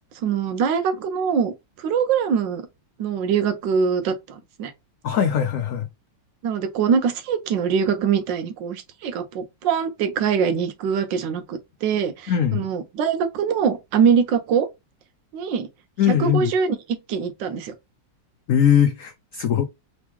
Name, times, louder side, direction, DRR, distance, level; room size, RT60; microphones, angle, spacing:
voice 1, 0.2-2.6 3.0-4.7 6.4-14.7 15.3-15.7 16.1-17.7, right 6 dB, 80° right, 1.4 m, -23 dB
voice 2, 5.0-5.9 12.3-12.7 16.0-16.5 18.5-19.6, left 9 dB, 85° left, 0.7 m, -20 dB
3.8 x 3.0 x 3.4 m
omnidirectional pair, 2.0 m